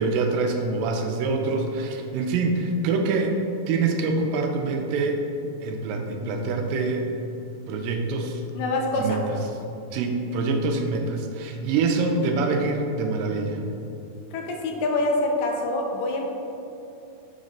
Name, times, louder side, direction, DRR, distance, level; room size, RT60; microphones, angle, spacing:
voice 1, 0.0-5.2 5.6-7.1 7.7-8.4 8.9-9.2 9.9-13.6, right 3 dB, 85° right, 3 dB, 2.3 m, -25 dB
voice 2, 8.6-9.2 14.3-16.3, left 2 dB, 85° left, 1 dB, 2.3 m, -25 dB
7.2 x 4.1 x 5.2 m, 2.8 s
omnidirectional pair, 4.0 m